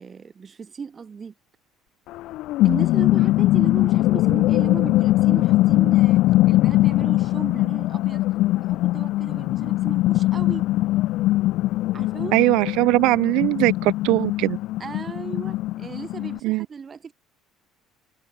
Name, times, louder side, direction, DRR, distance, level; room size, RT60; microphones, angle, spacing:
voice 1, 0.0-1.3 2.6-8.2 8.6-10.7 11.9-12.5 14.8-17.1, right 6 dB, 20° right, 3.7 m, -36 dB
sound 1, 2.1-16.4, left 17 dB, 60° left, 0.5 m, -21 dB
voice 2, 12.3-14.6 16.4-16.7, right 21 dB, 75° right, 0.4 m, -20 dB
cardioid pair, 175°, 0 cm